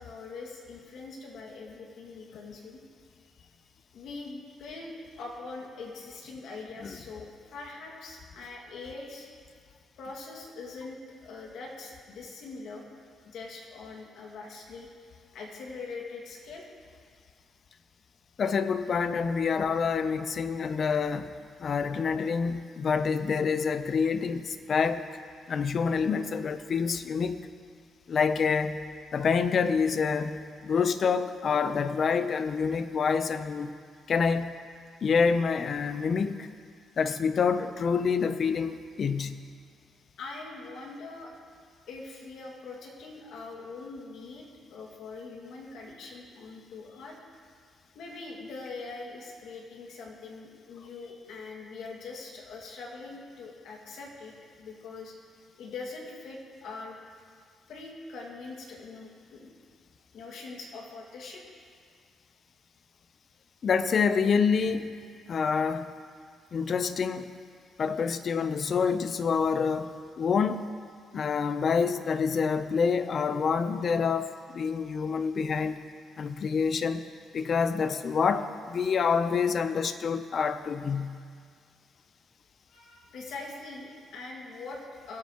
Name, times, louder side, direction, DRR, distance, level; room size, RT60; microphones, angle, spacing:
voice 1, 0.0-2.8 3.3-3.5 3.9-9.3 10.0-12.9 13.2-14.9 15.3-16.7 40.2-41.3 41.9-47.2 47.9-55.2 55.6-57.0 57.7-59.5 60.1-61.4 73.8-73.9 82.7-85.2, left 3 dB, 75° left, -1 dB, 2.1 m, -43 dB
voice 2, 18.4-21.3 21.6-25.0 25.5-27.4 28.1-28.8 29.1-30.4 30.6-33.7 34.1-34.5 35.0-36.5 37.0-39.4 63.6-64.9 65.3-65.9 66.5-67.3 67.8-70.6 71.1-75.8 76.2-77.1 77.3-81.2, left 5 dB, 50° left, 11 dB, 0.6 m, -27 dB
22.0 x 8.6 x 3.0 m, 2.1 s
cardioid pair, 90°, 0 cm